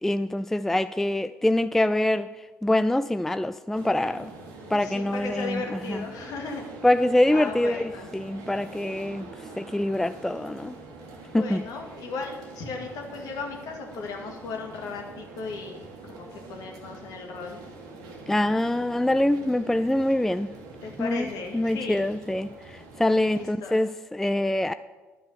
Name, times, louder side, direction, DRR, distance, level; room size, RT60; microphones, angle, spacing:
voice 1, 0.0-4.3 4.7-6.1 6.8-9.3 9.6-10.8 11.3-11.6 18.3-20.5 21.0-24.7, left 1 dB, 5° left, 0.3 m, -25 dB
sound 1, 3.7-23.5, right 3 dB, 65° right, 1.5 m, -44 dB
voice 2, 4.7-6.7 7.3-8.1 11.3-17.6 20.8-22.0 23.3-23.8, left 4 dB, 60° left, 2.0 m, -36 dB
11.5 x 5.4 x 6.7 m
figure-of-eight pair, 50°, 7 cm